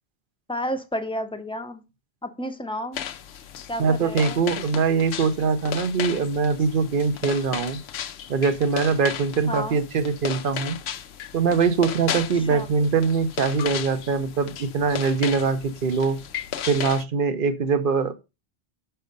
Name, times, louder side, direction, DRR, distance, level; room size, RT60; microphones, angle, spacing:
voice 1, 0.5-1.8 2.2-3.0 3.7-4.4 9.5-9.8 12.5-12.7, equal, 5° left, 0.7 m, -31 dB
sound 1, 2.9-17.0, left 9 dB, 85° left, 0.9 m, -35 dB
voice 2, 3.8-7.8 8.3-10.8 11.3-16.2 16.7-18.1, right 5 dB, 55° right, 0.9 m, -22 dB
6.3 x 4.5 x 5.2 m
omnidirectional pair, 1.1 m